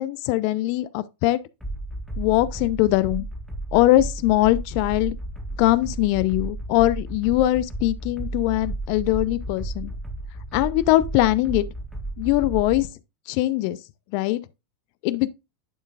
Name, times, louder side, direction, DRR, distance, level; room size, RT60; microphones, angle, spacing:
voice 1, 0.0-1.4 2.2-3.2 3.7-5.2 5.6-9.9 10.5-11.7 12.2-12.9 13.3-13.8 14.1-14.4 15.0-15.3, left 16 dB, 55° left, 0.5 m, -21 dB
sound 1, 1.6-12.9, right 2 dB, 5° right, 1.8 m, -33 dB
10.5 x 4.5 x 2.4 m
hypercardioid pair, 95°, 0 cm